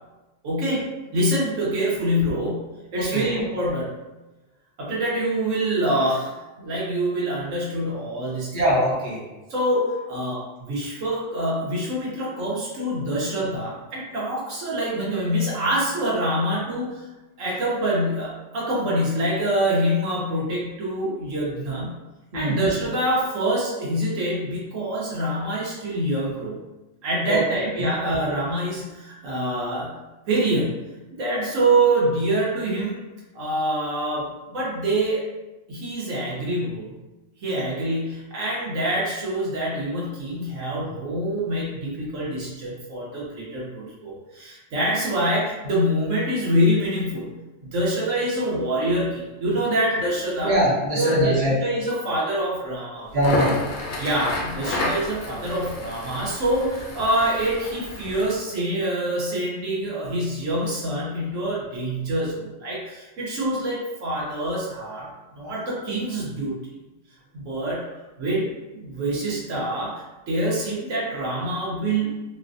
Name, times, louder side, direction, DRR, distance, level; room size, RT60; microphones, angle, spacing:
voice 1, 0.4-3.9 4.8-6.3 6.6-8.5 9.5-17.0 17.4-22.0 22.3-26.6 27.0-29.9 30.3-33.0 33.3-35.2 35.7-36.9 37.4-50.5 50.9-53.1 54.0-65.1 65.4-66.6 67.3-72.1, right 1 dB, 75° right, -5 dB, 1.2 m, -25 dB
voice 2, 2.9-3.4 8.5-9.2 22.3-22.6 27.3-27.4 27.8-27.9 50.4-51.5 53.1-53.6, equal, 45° right, -6 dB, 1.0 m, -22 dB
Crackle, 53.1-58.3, left 2 dB, 85° left, 1.1 m, -31 dB
4.1 x 2.1 x 2.5 m, 1.1 s
omnidirectional pair, 1.3 m